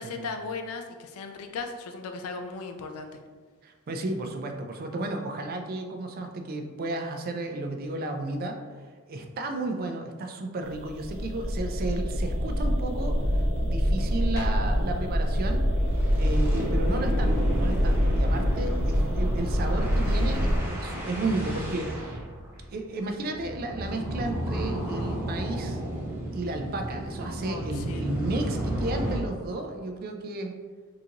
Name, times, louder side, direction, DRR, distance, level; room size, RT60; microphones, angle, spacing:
voice 1, 0.0-3.2 27.4-28.1, left 4 dB, 85° left, 6 dB, 0.4 m, -37 dB
voice 2, 3.6-8.6 9.1-15.6 16.2-22.2 22.7-25.8 26.3-30.5, right 2 dB, 45° right, 4 dB, 0.3 m, -33 dB
sound 1, 10.7-20.6, equal, 80° right, 0.9 m, -25 dB
sound 2, 12.5-12.6 13.0-13.1 13.4-13.6 13.9-14.0 15.3-29.2, right 1 dB, 10° right, 0.7 m, -34 dB
sound 3, 14.2-18.1, left 1 dB, 45° left, 1.0 m, -49 dB
3.7 x 2.5 x 2.8 m, 1.5 s
head